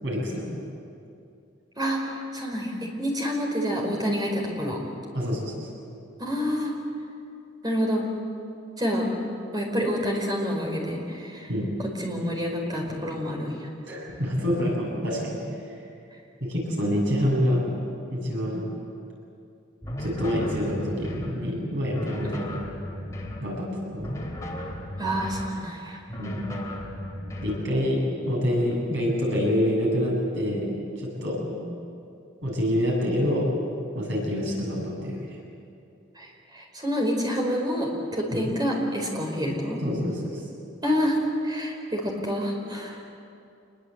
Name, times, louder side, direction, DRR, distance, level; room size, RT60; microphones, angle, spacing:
voice 1, 0.0-0.6 5.1-5.5 11.5-11.7 13.9-15.4 16.4-17.7 18.1-18.6 20.0-22.5 23.4-24.1 26.2-26.4 27.4-31.4 32.4-33.5 33.9-35.3 38.3-38.4 39.8-40.4, equal, 65° right, -2 dB, 7.6 m, -26 dB
voice 2, 1.8-4.8 6.2-6.7 7.6-8.0 8.8-9.1 9.5-11.5 12.0-13.7 22.2-22.4 25.0-26.0 31.5-31.6 36.2-39.8 40.8-41.2 41.4-43.0, equal, 20° right, 0 dB, 4.8 m, -28 dB
sound 1, 19.8-21.4 21.9-23.5 24.0-25.6 26.1-27.7, left 1 dB, 15° left, 3.6 m, -35 dB
26.5 x 22.0 x 8.1 m, 2.6 s
head